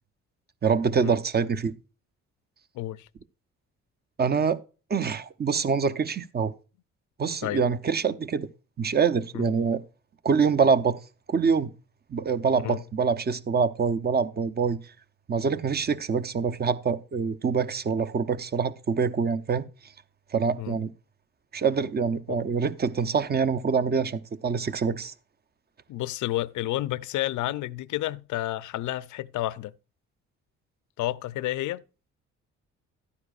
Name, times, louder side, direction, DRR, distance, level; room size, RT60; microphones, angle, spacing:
voice 1, 0.6-1.7 4.2-4.6 4.9-6.5 7.2-8.5 8.8-9.8 10.2-11.0 11.3-11.7 12.1-14.8 15.3-19.6 20.3-20.9 21.5-25.1, right 5 dB, 30° right, 0.7 m, -25 dB
voice 2, 2.7-3.1 7.4-7.6 9.3-9.5 12.6-12.8 20.6-20.8 22.3-22.4 25.9-29.7 31.0-31.8, left 15 dB, 80° left, 0.5 m, -30 dB
12.0 x 9.6 x 2.4 m
cardioid pair, 90°, 30 cm